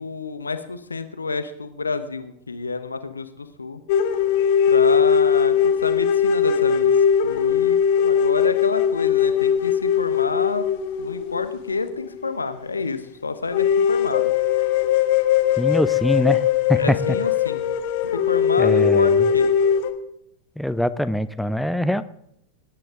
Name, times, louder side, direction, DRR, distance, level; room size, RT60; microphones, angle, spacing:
voice 1, 0.0-3.8 4.7-6.9 7.2-10.7 11.0-14.3 16.7-17.8 18.0-19.5, left 4 dB, 75° left, 11 dB, 1.2 m, -29 dB
sound 1, 3.9-12.5 12.9-13.0 13.5-19.9, left 8 dB, 50° left, 1.4 m, -20 dB
voice 2, 15.6-16.4 16.7-17.0 18.6-19.2 20.6-22.0, equal, ahead, 14 dB, 0.7 m, -22 dB
19.5 x 10.5 x 3.8 m, 0.74 s
figure-of-eight pair, 90°, 0 cm